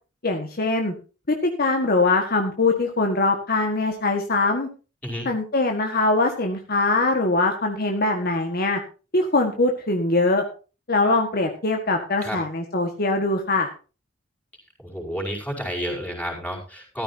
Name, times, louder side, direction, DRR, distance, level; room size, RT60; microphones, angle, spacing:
voice 1, 0.2-0.9 1.3-4.7 5.3-8.8 9.1-10.4 10.9-13.7, left 2 dB, 50° left, 3 dB, 1.7 m, -22 dB
voice 2, 14.8-17.0, equal, 10° left, -1 dB, 5.2 m, -30 dB
14.5 x 13.5 x 2.8 m, 0.33 s
head